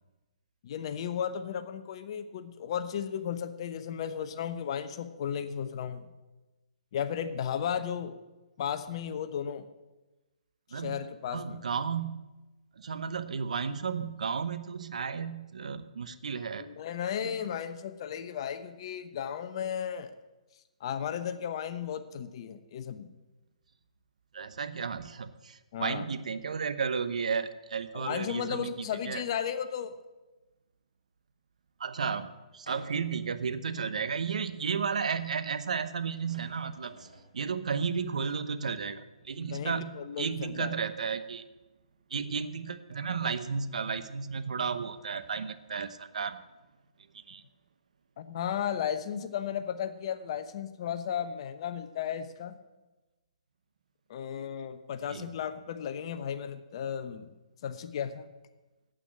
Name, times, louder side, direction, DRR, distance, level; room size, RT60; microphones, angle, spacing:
voice 1, 0.6-6.1 6.9-8.1 8.6-9.7 10.7-11.6 16.6-20.1 20.8-23.1 25.7-26.1 27.9-29.9 39.5-40.7 48.2-52.6 54.1-57.3 57.6-58.2, left 8 dB, 45° left, 10 dB, 1.0 m, -34 dB
voice 2, 11.3-12.3 12.8-16.7 17.2-17.4 24.3-29.2 31.8-39.9 40.2-41.5 42.1-46.4 47.1-47.4 55.1-55.3, right 6 dB, 70° right, 12 dB, 0.8 m, -33 dB
sound 1, 32.7-33.3 33.9-34.0 35.8-35.9 36.2-37.3, right 2 dB, 90° right, 3.5 m, -51 dB
8.9 x 8.3 x 9.0 m, 1.1 s
hypercardioid pair, 140°, 4 cm